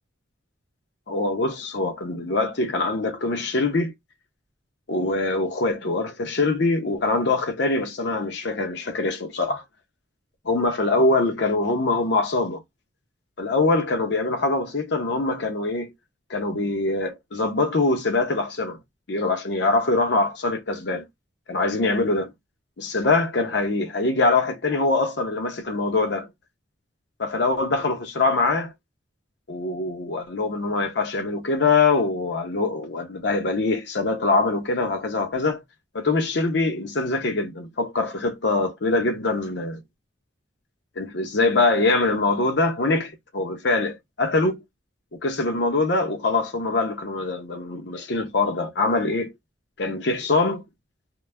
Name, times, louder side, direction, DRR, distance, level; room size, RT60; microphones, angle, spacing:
voice 1, 1.1-3.9 4.9-9.6 10.4-12.6 13.4-15.9 16.3-18.8 19.1-21.1 21.5-22.3 22.8-26.3 27.2-28.7 29.5-35.6 35.9-39.8 41.0-44.6 45.1-49.3 49.8-50.6, left 3 dB, 60° left, 0.7 m, -23 dB
2.2 x 2.1 x 3.2 m
head